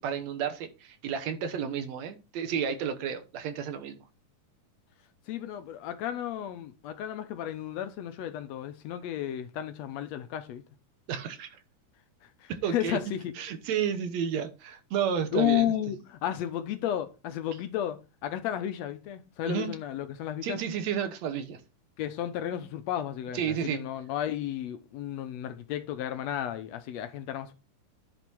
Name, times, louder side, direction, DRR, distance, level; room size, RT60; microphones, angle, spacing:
voice 1, 0.0-4.0 11.1-11.6 12.5-13.0 13.4-15.7 19.4-19.7 20.4-21.6 23.3-23.8, right 8 dB, 65° right, 2.0 m, -31 dB
voice 2, 5.3-10.6 12.4-13.3 15.3-20.6 22.0-27.5, left 11 dB, 70° left, 1.7 m, -33 dB
11.0 x 4.0 x 6.1 m
omnidirectional pair, 3.8 m